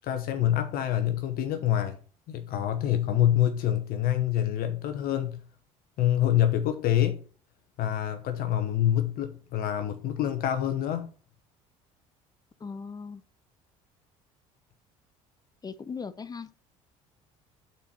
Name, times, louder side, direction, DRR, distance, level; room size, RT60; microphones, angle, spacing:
voice 1, 0.0-2.0 2.3-5.4 6.0-7.2 7.8-11.1, left 11 dB, 60° left, 0.9 m, -26 dB
voice 2, 12.6-13.2 15.6-16.6, left 5 dB, 25° left, 0.7 m, -38 dB
5.6 x 4.3 x 5.3 m
hypercardioid pair, 70°, 17 cm